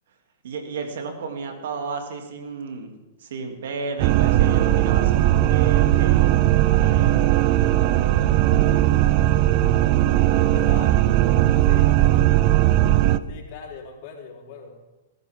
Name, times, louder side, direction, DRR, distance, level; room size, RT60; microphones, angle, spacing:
voice 1, 0.4-2.9 3.2-6.4 6.7-7.2, right 4 dB, 75° right, 3 dB, 2.9 m, -33 dB
sound 1, 4.0-13.2, right 14 dB, 50° right, 0.7 m, -18 dB
voice 2, 10.5-11.0 11.7-12.2 13.3-14.8, left 6 dB, 55° left, -1 dB, 4.3 m, -40 dB
21.5 x 13.0 x 3.8 m, 1.1 s
hypercardioid pair, 115°, 0 cm